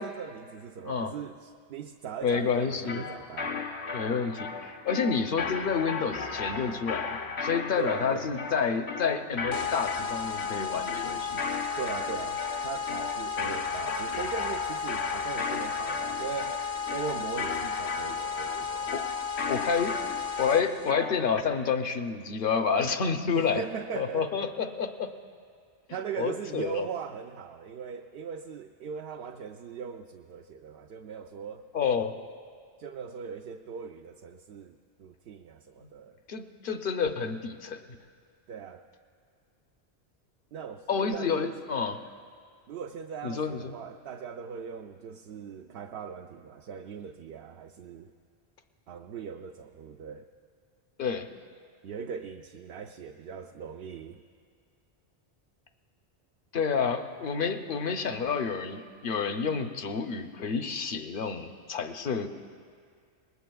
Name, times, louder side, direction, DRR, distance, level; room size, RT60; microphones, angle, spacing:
voice 1, 0.0-3.6 7.8-8.4 11.8-16.6 16.9-18.9 23.3-24.3 25.9-31.7 32.8-36.2 38.5-38.8 40.5-41.6 42.7-48.1 48.9-50.3 51.8-54.2, right 7 dB, 70° right, 4 dB, 0.8 m, -39 dB
voice 2, 0.8-1.1 2.2-3.1 3.9-11.4 18.9-19.0 19.5-19.9 20.4-23.6 23.9-25.1 26.2-26.9 31.7-32.1 36.3-37.8 40.9-42.0 43.2-43.7 51.0-51.3 56.5-62.3, left 6 dB, 55° left, 7 dB, 0.8 m, -29 dB
sound 1, 2.8-21.4, left 4 dB, 75° left, 1.2 m, -36 dB
sound 2, 9.5-20.9, left 6 dB, 40° left, 0.5 m, -34 dB
24.5 x 20.0 x 2.3 m, 2.1 s
omnidirectional pair, 1.1 m